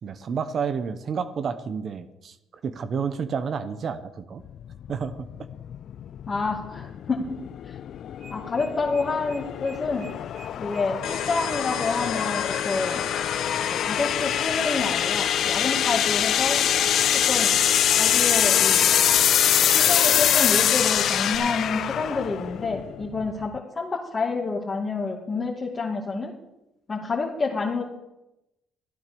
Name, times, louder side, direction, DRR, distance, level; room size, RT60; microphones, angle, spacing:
voice 1, 0.0-2.4 2.6-4.4 4.9-5.3, right 6 dB, 50° right, 11 dB, 1.0 m, -30 dB
sound 1, 4.5-23.6, left 10 dB, 60° left, 0.4 m, -24 dB
voice 2, 6.3-7.8 8.3-10.1 10.6-13.0 13.7-16.6 17.1-17.6 18.0-18.9 19.7-26.3 26.9-27.9, left 4 dB, 30° left, -3 dB, 2.3 m, -28 dB
sound 2, 8.0-14.8, right 3 dB, 80° right, 6.1 m, -47 dB
sound 3, 11.0-21.4, left 8 dB, 75° left, 2.2 m, -31 dB
14.0 x 9.0 x 7.0 m, 0.92 s
cardioid pair, 90°, 0 cm